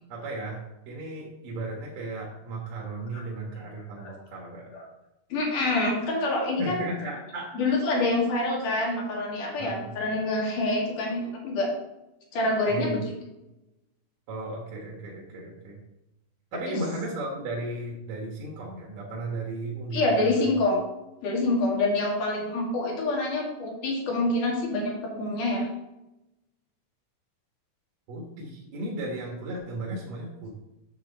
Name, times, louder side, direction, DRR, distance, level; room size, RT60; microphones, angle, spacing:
voice 1, 0.1-4.7 6.6-7.5 9.6-9.9 12.7-13.0 14.3-15.8 16.5-20.5 28.1-30.5, right 2 dB, 85° right, -3 dB, 3.1 m, -35 dB
voice 2, 5.3-6.8 7.6-11.7 12.3-13.1 16.7-16.8 19.9-20.8 21.2-25.7, left 2 dB, 75° left, -2 dB, 3.6 m, -26 dB
9.0 x 6.8 x 4.1 m, 0.92 s
omnidirectional pair, 3.7 m